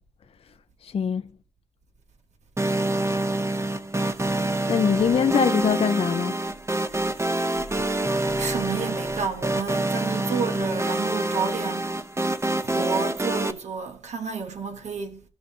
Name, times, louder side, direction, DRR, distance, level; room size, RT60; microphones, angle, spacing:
voice 1, 0.8-1.2 4.7-6.3, left 7 dB, 60° left, 0.4 m, -22 dB
sound 1, 2.6-13.5, right 2 dB, 25° right, 0.8 m, -26 dB
voice 2, 8.3-11.9 12.6-15.2, right 5 dB, 90° right, 1.3 m, -30 dB
15.0 x 5.6 x 2.7 m
cardioid pair, 65°, 11 cm